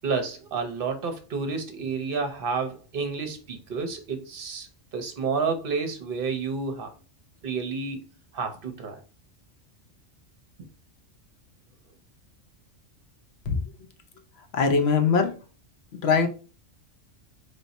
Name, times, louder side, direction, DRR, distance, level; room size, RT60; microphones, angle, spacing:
voice 1, 0.0-6.9 7.4-8.1 8.3-9.0 10.6-10.7, right 5 dB, 50° right, 0.9 m, -30 dB
voice 2, 14.5-15.3 16.0-16.3, left 5 dB, 60° left, 0.9 m, -21 dB
3.4 x 2.6 x 4.0 m
omnidirectional pair, 1.3 m